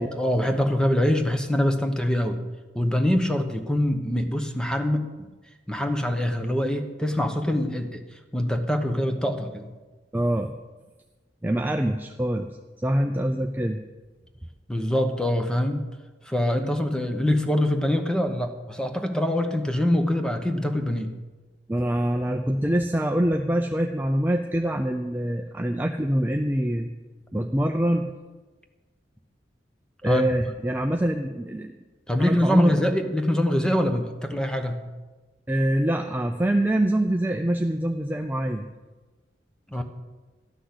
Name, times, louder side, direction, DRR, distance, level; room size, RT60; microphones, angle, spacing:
voice 1, 0.0-2.4 2.7-5.1 5.7-8.0 8.3-9.7 14.7-15.9 16.3-21.1 30.1-30.3 32.1-34.8 39.7-39.8, left 1 dB, 5° left, 6 dB, 0.9 m, -24 dB
voice 2, 10.1-10.5 11.4-13.8 21.7-26.9 27.3-28.1 30.0-31.7 32.2-32.8 35.5-38.7, right 1 dB, 10° right, 3 dB, 0.5 m, -25 dB
12.5 x 6.3 x 8.0 m, 1.3 s
head